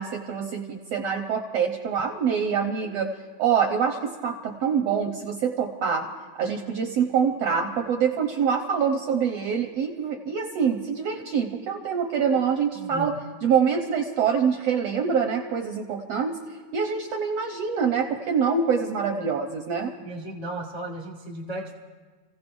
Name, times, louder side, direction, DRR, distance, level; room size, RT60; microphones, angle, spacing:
voice 1, 0.0-6.1 6.4-16.4 16.7-19.9, right 6 dB, 70° right, 3 dB, 1.5 m, -25 dB
voice 2, 12.7-13.2 20.0-21.7, right 1 dB, 55° left, -3 dB, 0.4 m, -35 dB
30.0 x 16.0 x 2.6 m, 1.4 s
omnidirectional pair, 3.8 m